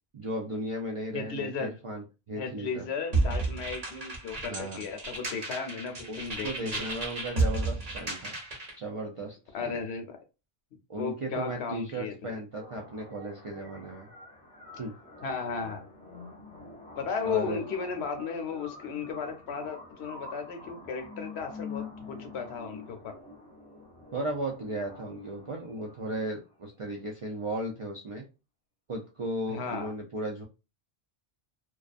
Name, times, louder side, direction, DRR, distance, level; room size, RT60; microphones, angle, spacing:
voice 1, 0.1-2.9 4.4-4.8 6.1-8.4 8.8-9.8 10.9-14.1 14.8-14.9 17.2-17.6 24.1-28.2 28.9-30.4, right 1 dB, 60° right, 0 dB, 0.3 m, -36 dB
voice 2, 1.1-1.7 2.4-6.9 9.5-10.2 11.0-12.4 15.2-15.8 17.0-23.2 29.5-29.9, left 5 dB, 75° left, 6 dB, 0.9 m, -35 dB
sound 1, 3.1-8.8, right 3 dB, 40° right, 0.8 m, -32 dB
sound 2, 12.5-26.5, left 3 dB, 10° left, 0.5 m, -46 dB
2.3 x 2.3 x 2.4 m, 0.29 s
omnidirectional pair, 1.1 m